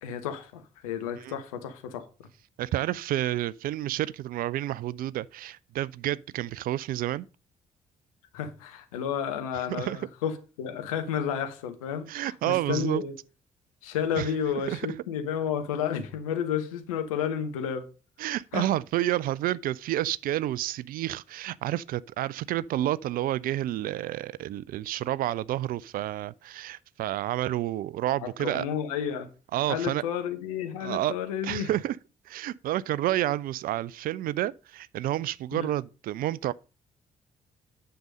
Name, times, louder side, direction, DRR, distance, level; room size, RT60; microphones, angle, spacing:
voice 1, 0.0-2.1 8.3-13.1 13.8-17.9 18.5-18.7 28.2-29.3 29.7-31.7 35.5-35.7, left 8 dB, 75° left, 1.2 m, -31 dB
voice 2, 2.6-7.3 9.7-10.0 12.1-13.0 14.2-14.3 14.7-14.8 18.2-28.6 29.5-30.0 30.8-31.1 31.4-32.0 32.3-36.5, right 14 dB, 55° right, 0.4 m, -30 dB
9.3 x 6.8 x 5.3 m
figure-of-eight pair, 40°, 18 cm